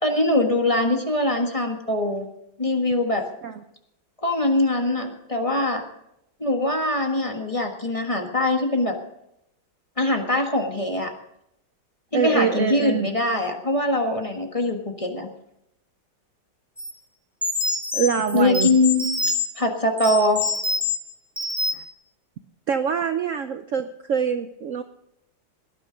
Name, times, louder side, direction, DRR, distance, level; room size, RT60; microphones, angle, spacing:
voice 1, 0.0-2.2 2.6-3.2 4.2-5.8 6.4-8.9 10.0-11.1 12.1-15.3 18.3-19.1 19.6-20.4, left 1 dB, 20° left, 3 dB, 1.4 m, -22 dB
voice 2, 12.1-13.1 17.9-18.7 21.7-21.8 22.7-24.8, right 7 dB, 75° right, 8 dB, 0.7 m, -24 dB
sound 1, 16.8-16.9 17.4-19.5 20.0-21.0 21.4-21.9, left 3 dB, ahead, 2.4 m, -26 dB
18.0 x 10.5 x 5.1 m, 0.80 s
omnidirectional pair, 2.2 m